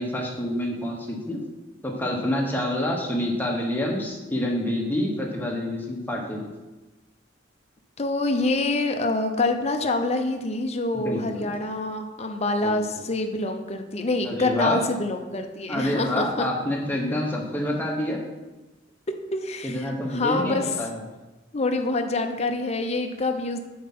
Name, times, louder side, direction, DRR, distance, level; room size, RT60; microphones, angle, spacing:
voice 1, 0.0-1.4 1.8-6.5 10.9-11.5 12.6-12.8 14.2-14.8 15.7-18.2 19.6-21.0, left 1 dB, 10° left, -1 dB, 1.1 m, -27 dB
voice 2, 8.0-16.5 19.3-20.8 21.5-23.6, left 2 dB, 35° left, 5 dB, 0.7 m, -26 dB
7.5 x 4.7 x 4.2 m, 1.1 s
head